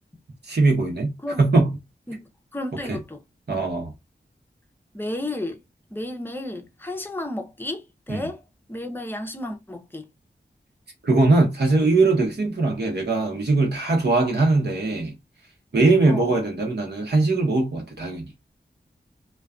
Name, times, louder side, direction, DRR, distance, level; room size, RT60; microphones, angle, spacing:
voice 1, 0.5-1.1 1.4-1.7 2.9-3.0 3.5-3.9 8.1-8.3 11.0-15.1 15.7-18.3, right 3 dB, 65° right, 1.0 m, -20 dB
voice 2, 2.5-3.2 4.9-5.6 5.9-8.4 8.7-10.1 16.1-16.4, left 1 dB, 10° left, 0.6 m, -32 dB
2.4 x 2.2 x 2.3 m
wide cardioid pair, 55°, 18 cm